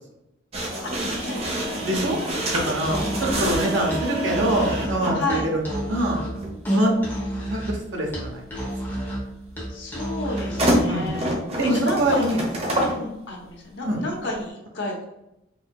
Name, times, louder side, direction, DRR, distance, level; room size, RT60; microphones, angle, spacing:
sound 1, 0.5-5.2 6.4-6.5 10.4-13.0, right 1 dB, 35° right, 0.7 m, -26 dB
voice 1, 0.8-1.8 2.2-2.4 2.8-3.4 5.1-5.5 7.1-7.7 9.7-11.3 11.6-12.4 12.9-15.0, left 2 dB, 80° left, -1 dB, 0.9 m, -32 dB
voice 2, 1.8-2.2 2.5-6.2 6.7-7.0 7.5-9.0 10.9-11.1 11.6-12.4 13.8-14.0, right 1 dB, 85° right, 0 dB, 0.9 m, -25 dB
Musical instrument, 2.8-10.7, right 1 dB, 10° left, 0.9 m, -30 dB
4.0 x 2.8 x 2.3 m, 0.86 s
head